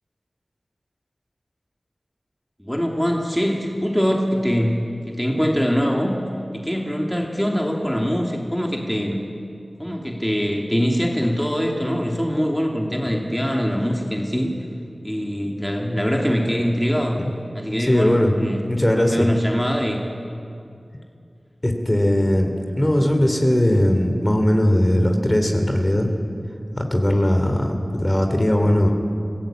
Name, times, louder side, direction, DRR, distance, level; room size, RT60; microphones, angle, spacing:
voice 1, 2.6-6.2 6.5-9.2 9.8-14.5 15.0-17.2 17.5-18.6 18.9-20.0, equal, 5° left, 0 dB, 2.6 m, -23 dB
voice 2, 17.8-18.4 18.7-19.3 21.6-26.1 26.8-28.9, left 1 dB, 25° left, 4 dB, 2.9 m, -19 dB
27.0 x 17.0 x 8.9 m, 2.5 s
wide cardioid pair, 60°, 0 cm